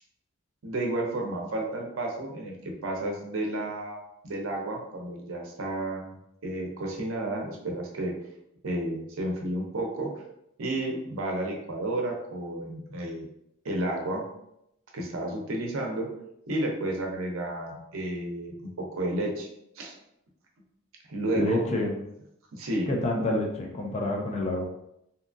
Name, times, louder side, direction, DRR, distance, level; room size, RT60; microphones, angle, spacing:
voice 1, 0.6-6.2 6.4-8.1 8.6-10.1 10.6-13.3 13.6-14.2 14.9-16.1 16.5-19.5 19.8-19.9 21.1-21.6 22.5-22.9, right 1 dB, 70° right, 0 dB, 0.6 m, -31 dB
voice 2, 21.4-22.0 22.9-24.6, left 1 dB, 30° left, 0 dB, 0.5 m, -28 dB
2.8 x 2.3 x 2.5 m, 0.80 s
head